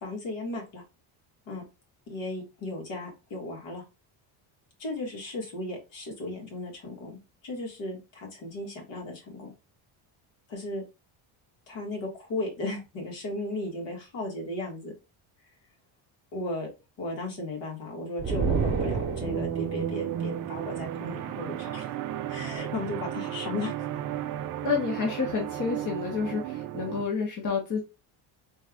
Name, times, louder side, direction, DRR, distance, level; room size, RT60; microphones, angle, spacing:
voice 1, 0.0-0.8 1.5-1.6 2.1-3.8 4.8-9.5 10.5-10.8 11.7-14.9 16.3-16.7 17.0-21.9 22.3-23.9, left 2 dB, 65° left, -1 dB, 2.0 m, -35 dB
sound 1, 18.2-19.8, right 5 dB, 30° right, 1.0 m, -28 dB
sound 2, 19.2-27.0, right 11 dB, 45° right, 0.4 m, -34 dB
voice 2, 24.6-27.8, left 5 dB, 35° left, -1 dB, 1.1 m, -29 dB
4.1 x 2.5 x 3.5 m, 0.28 s
cardioid pair, 120°, 48 cm